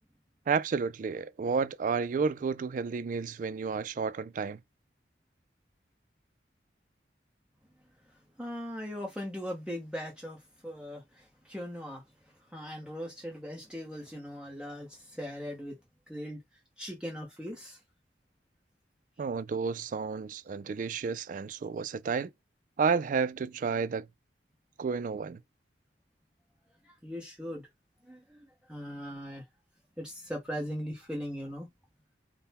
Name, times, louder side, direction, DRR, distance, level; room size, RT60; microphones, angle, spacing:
voice 1, 0.5-4.6 19.2-22.3 22.8-24.1 24.8-25.4, right 5 dB, 45° right, 0.3 m, -31 dB
voice 2, 8.4-10.4 10.6-12.0 12.5-15.8 16.1-16.4 16.8-17.8 26.8-27.7 28.1-29.4 30.0-31.7, equal, 5° right, 0.8 m, -39 dB
3.7 x 2.1 x 4.1 m
head